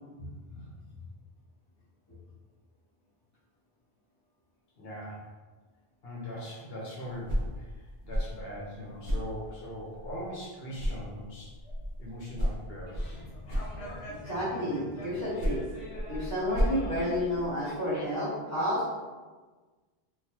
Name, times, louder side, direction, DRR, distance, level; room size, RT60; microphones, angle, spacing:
voice 1, 0.2-0.7 4.8-5.2 6.0-11.5 12.0-13.2, equal, 75° left, -5 dB, 1.0 m, -41 dB
sound 1, 7.1-10.5 10.7-14.3 15.1-17.8, equal, 35° right, 0.7 m, -34 dB
sound 2, 12.9-17.8, left 1 dB, 45° left, 0.8 m, -45 dB
voice 2, 14.2-15.6 16.1-18.9, equal, 15° left, -10 dB, 1.2 m, -30 dB
3.8 x 2.4 x 2.8 m, 1.3 s
omnidirectional pair, 1.0 m